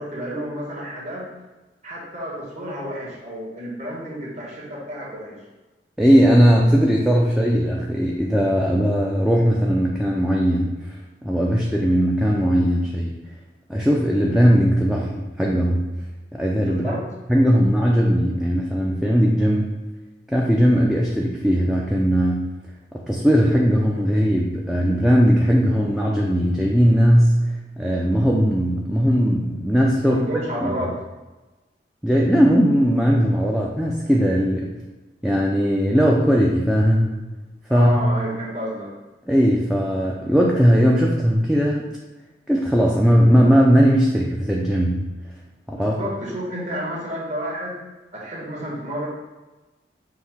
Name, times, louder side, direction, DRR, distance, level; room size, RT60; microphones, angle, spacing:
voice 1, 0.0-1.3 1.8-5.4 16.6-17.0 30.0-31.0 37.7-38.9 45.7-47.8 48.1-49.1, equal, 45° right, -5 dB, 1.2 m, -30 dB
voice 2, 6.0-10.7 11.2-13.1 13.7-15.1 15.4-15.9 16.3-16.9 17.3-19.7 20.3-22.5 23.1-27.4 27.8-30.2 30.6-30.7 32.0-34.7 35.2-37.1 37.7-38.0 39.3-41.9 42.5-45.1 45.7-46.0, equal, 5° right, -3 dB, 0.3 m, -18 dB
5.6 x 2.1 x 4.4 m, 1.1 s
head